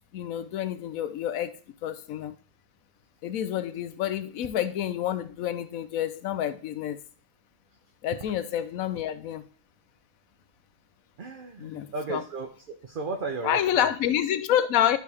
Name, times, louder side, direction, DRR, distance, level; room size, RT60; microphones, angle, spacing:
voice 1, 0.1-1.5 1.8-2.3 3.2-7.0 8.0-9.5 11.6-12.2 13.4-15.0, left 11 dB, 70° left, 1.1 m, -28 dB
voice 2, 11.2-12.5 12.8-13.9, right 3 dB, 45° right, 0.8 m, -34 dB
12.0 x 4.7 x 3.5 m
omnidirectional pair, 1.5 m